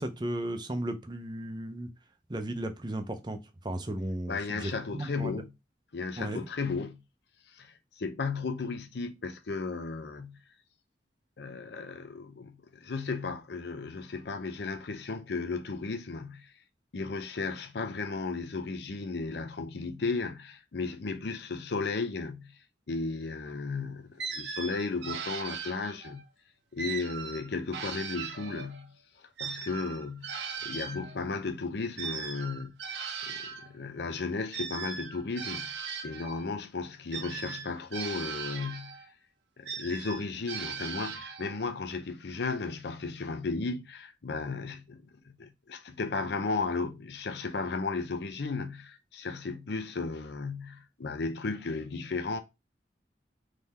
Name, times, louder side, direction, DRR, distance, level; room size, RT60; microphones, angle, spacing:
voice 1, 0.0-1.9 2.3-5.3 6.2-6.5, right 1 dB, 25° right, 0.6 m, -35 dB
voice 2, 4.3-5.5 5.9-7.0 7.5-10.4 11.4-16.5 16.9-22.6 22.9-26.2 26.7-28.9 29.4-32.8 33.2-39.0 39.6-45.0 45.4-52.4, left 4 dB, 65° left, 0.6 m, -35 dB
sound 1, 24.2-26.2 26.8-28.9 29.4-33.7 34.5-36.5 37.1-39.1 39.7-41.6, right 6 dB, 80° right, 0.9 m, -39 dB
3.9 x 3.3 x 4.1 m
head